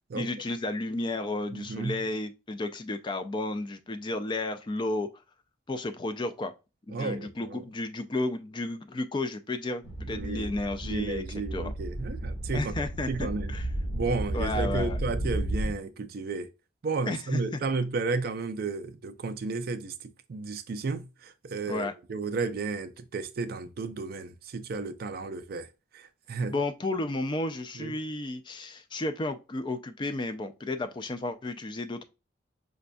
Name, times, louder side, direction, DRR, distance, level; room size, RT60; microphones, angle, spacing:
voice 1, 0.1-5.1 5.7-6.5 6.9-11.2 11.5-11.7 12.5-13.7 14.3-15.0 17.1-17.6 21.7-22.0 26.5-32.0, left 2 dB, 25° left, 0.3 m, -32 dB
voice 2, 1.5-2.0 6.9-7.6 10.1-10.5 10.8-12.7 13.1-13.5 13.9-16.5 16.8-19.9 20.3-25.7 25.9-26.5 27.8-27.9, right 4 dB, 50° right, 0.4 m, -33 dB
sound 1, 9.8-15.7, right 1 dB, 75° left, 1.9 m, -33 dB
5.1 x 2.3 x 2.5 m
head